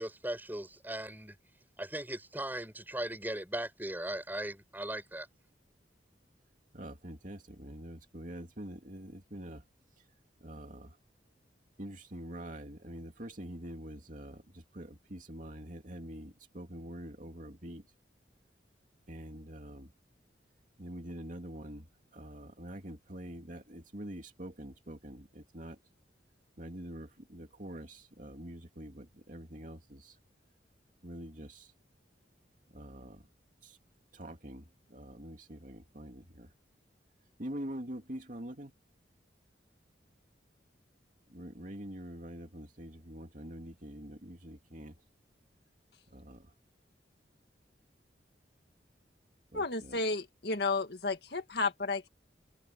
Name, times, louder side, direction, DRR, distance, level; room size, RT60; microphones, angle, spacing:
voice 1, 0.0-1.3 1.8-5.3, right 1 dB, 10° right, 7.2 m, -38 dB
voice 2, 6.7-9.6 10.4-10.9 11.8-17.8 19.1-19.9 20.8-21.8 22.1-25.8 26.6-30.2 31.0-31.7 32.7-33.2 33.6-33.8 34.1-36.5 37.4-38.7 41.3-44.9 46.1-46.4 49.5-50.0, right 1 dB, 45° right, 2.7 m, -45 dB
voice 3, 49.5-52.1, left 3 dB, 60° left, 1.9 m, -32 dB
head